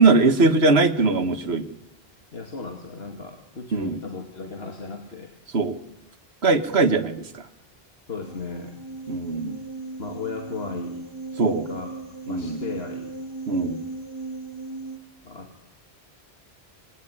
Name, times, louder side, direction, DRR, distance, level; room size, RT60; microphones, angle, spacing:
voice 1, 0.0-1.7 3.7-4.0 5.5-5.8 6.4-7.5 9.1-9.6 11.4-11.7 12.3-12.6 13.5-13.8, right 3 dB, 75° right, 10 dB, 1.8 m, -20 dB
voice 2, 2.3-5.3 8.1-8.8 10.0-11.1 11.5-13.1 15.2-15.7, left 4 dB, 70° left, 3 dB, 2.9 m, -36 dB
sound 1, 8.2-15.0, right 3 dB, 25° right, 2.0 m, -37 dB
27.5 x 21.0 x 10.0 m, 0.87 s
omnidirectional pair, 1.1 m